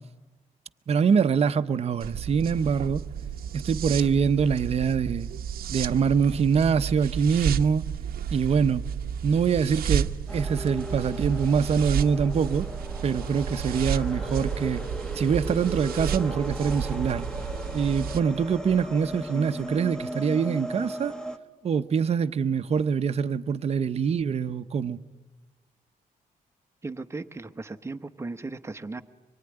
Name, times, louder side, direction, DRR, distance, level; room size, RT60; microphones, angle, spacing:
voice 1, 0.9-3.0 3.5-5.3 5.7-7.8 8.3-8.8 9.2-12.7 13.0-14.8 15.1-17.3 17.7-21.1 21.6-25.0, right 6 dB, 45° right, 0.8 m, -24 dB
sound 1, 2.0-18.2, right 9 dB, 80° right, 0.9 m, -32 dB
sound 2, 10.3-21.4, equal, 5° left, 1.1 m, -36 dB
voice 2, 26.8-29.0, right 3 dB, 15° right, 1.0 m, -36 dB
25.0 x 23.0 x 9.9 m
wide cardioid pair, 150°, 15 cm